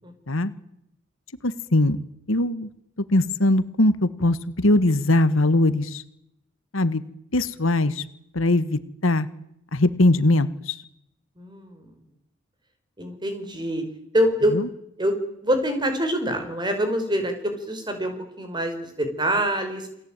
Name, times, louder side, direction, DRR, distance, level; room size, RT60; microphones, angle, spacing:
voice 1, 1.4-2.0 2.3-2.7 3.1-6.0 6.7-7.0 7.3-8.0 8.3-9.3 9.7-10.5, left 1 dB, 90° left, 14 dB, 1.6 m, -20 dB
voice 2, 11.4-12.0 13.0-13.9 14.1-14.6 15.0-15.1 15.4-19.9, equal, 20° right, 6 dB, 4.9 m, -25 dB
28.5 x 18.5 x 9.0 m, 0.79 s
head